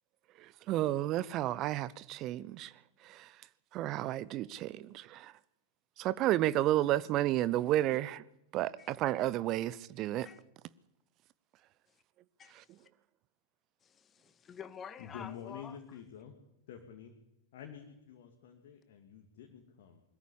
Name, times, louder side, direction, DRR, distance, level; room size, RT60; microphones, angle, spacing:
voice 1, 0.4-2.7 3.0-3.3 3.7-5.3 6.0-8.2 8.5-10.3 12.5-12.6, right 14 dB, 35° right, 0.9 m, -32 dB
voice 2, 12.4-12.9 13.8-15.8, left 7 dB, 25° left, 1.1 m, -49 dB
voice 3, 15.0-16.4 16.7-17.1 17.5-20.0, left 8 dB, 55° left, 2.6 m, -48 dB
21.5 x 13.5 x 10.0 m
figure-of-eight pair, 90°, 0 cm